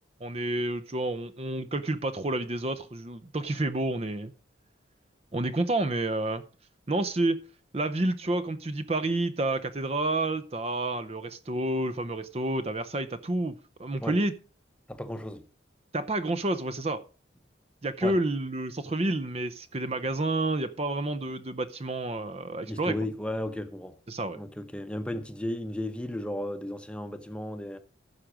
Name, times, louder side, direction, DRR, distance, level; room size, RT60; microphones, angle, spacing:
voice 1, 0.2-4.3 5.3-6.4 6.9-7.4 7.7-14.3 15.9-17.0 17.8-23.0 24.1-24.4, right 2 dB, 35° right, 0.6 m, -29 dB
voice 2, 14.9-15.4 18.0-18.2 22.7-23.9 24.3-27.8, left 1 dB, 5° left, 0.8 m, -34 dB
15.0 x 6.0 x 5.0 m
head